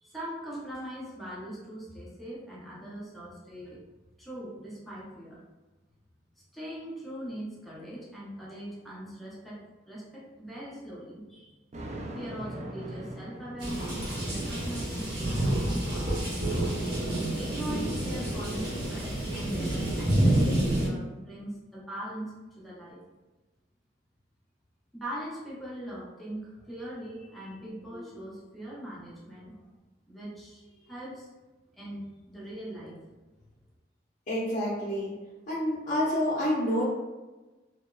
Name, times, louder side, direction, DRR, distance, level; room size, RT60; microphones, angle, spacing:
voice 1, 0.0-3.8 4.2-5.4 6.5-11.6 12.1-16.4 17.3-23.0 24.9-29.7 30.1-31.3 31.8-33.2, right 1 dB, ahead, -7 dB, 0.7 m, -41 dB
Thunder, 11.7-14.3, right 1 dB, 40° right, 0.4 m, -40 dB
sound 1, 13.6-20.9, right 1 dB, 65° right, 1.0 m, -28 dB
voice 2, 34.3-35.1 35.5-36.8, equal, 45° left, -7 dB, 0.6 m, -28 dB
2.8 x 2.1 x 2.3 m, 1.1 s
head